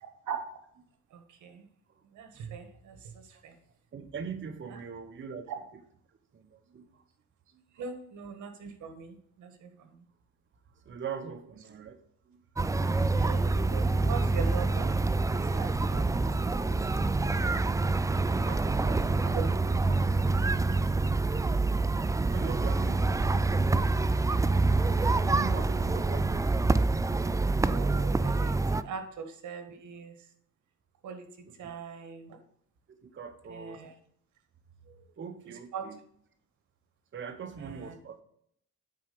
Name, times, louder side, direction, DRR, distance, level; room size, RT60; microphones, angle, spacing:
voice 1, 1.1-1.7 2.1-3.5 4.7-4.8 7.7-10.0 13.0-16.8 18.8-19.9 20.7-20.8 27.6-30.1 31.0-31.3 31.6-32.4 33.5-33.9 35.7-35.8 37.6-37.9, right 6 dB, 75° right, 6 dB, 1.7 m, -42 dB
voice 2, 3.9-5.8 6.3-7.0 10.8-12.0 12.3-12.4 18.2-18.7 22.3-23.5 25.0-26.6 28.8-28.9 31.5-31.7 32.9-33.8 35.2-36.0 37.1-38.2, right 6 dB, 40° right, 7 dB, 1.0 m, -42 dB
sound 1, 12.6-28.8, right 3 dB, 10° right, 0.4 m, -26 dB
9.3 x 4.3 x 6.8 m, 0.67 s
cardioid pair, 90°, 30 cm